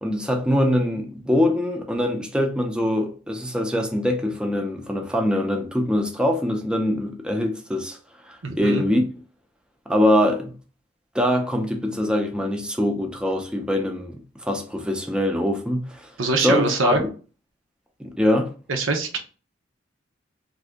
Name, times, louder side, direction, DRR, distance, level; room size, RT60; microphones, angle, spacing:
voice 1, 0.0-8.0 8.2-9.0 9.9-10.5 11.1-16.1 16.4-17.0 18.0-18.5, left 1 dB, 5° right, 0.5 m, -23 dB
voice 2, 8.4-8.8 16.2-17.1 18.7-19.2, right 3 dB, 85° right, 0.7 m, -23 dB
2.7 x 2.5 x 3.5 m
head